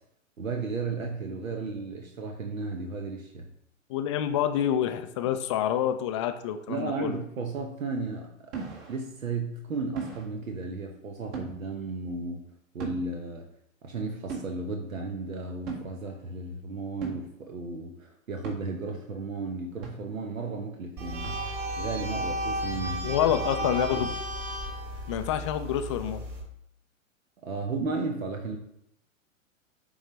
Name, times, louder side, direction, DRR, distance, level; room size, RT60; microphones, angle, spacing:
voice 1, 0.4-3.5 6.7-8.5 8.9-12.4 12.7-13.5 13.8-21.4 21.8-23.3 23.6-24.1 27.4-28.6, right 3 dB, 80° right, 3 dB, 1.0 m, -34 dB
voice 2, 3.9-7.2 23.0-24.1 25.1-26.2, left 10 dB, 25° left, 9 dB, 0.3 m, -27 dB
sound 1, 8.5-9.0 10.0-10.3 11.3-11.6 12.8-13.1 14.3-14.5 15.7-15.9 17.0-17.3 18.4-18.6 19.8-20.2 21.2-21.6 22.7-23.1, right 4 dB, 50° right, 1.8 m, -37 dB
sound 2, 21.0-26.4, equal, 25° right, 1.8 m, -33 dB
9.9 x 3.9 x 3.1 m, 0.77 s
figure-of-eight pair, 110°, 40 cm